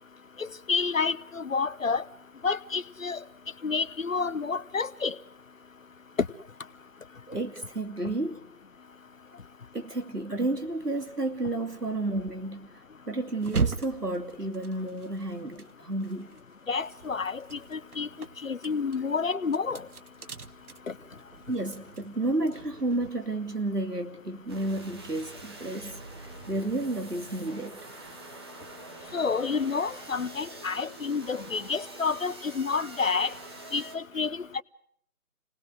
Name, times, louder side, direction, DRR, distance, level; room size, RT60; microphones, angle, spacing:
voice 1, 0.4-2.0 2.4-3.2 3.6-5.2 6.2-6.3 16.7-18.1 18.4-19.9 20.9-21.0 29.1-33.3 33.7-34.6, left 5 dB, 60° left, 0.9 m, -29 dB
voice 2, 7.3-8.4 9.7-12.7 13.1-16.3 21.5-28.1, right 2 dB, 85° right, 2.9 m, -31 dB
sound 1, 13.4-16.4 16.7-23.1, right 5 dB, 70° right, 1.0 m, -37 dB
sound 2, 24.5-33.9, right 2 dB, 15° right, 1.2 m, -45 dB
28.0 x 19.0 x 6.4 m
figure-of-eight pair, 150°, 46 cm